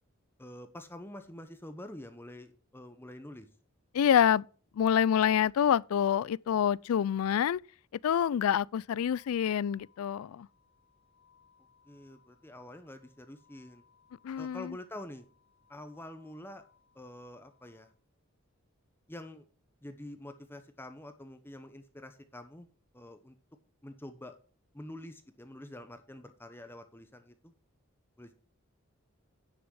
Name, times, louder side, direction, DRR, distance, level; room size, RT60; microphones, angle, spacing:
voice 1, 0.4-3.5 11.9-13.8 14.4-15.3 15.7-16.6 16.9-17.9 19.1-19.4 19.8-22.7 22.9-23.4 23.8-24.4 24.7-27.5 28.2-28.3, left 1 dB, 10° left, 0.8 m, -47 dB
voice 2, 3.9-4.5 4.8-7.6 8.0-10.5 14.2-14.8, left 9 dB, 85° left, 0.3 m, -27 dB
sound 1, 8.9-17.9, left 7 dB, 65° left, 2.0 m, -68 dB
9.9 x 6.1 x 4.7 m
head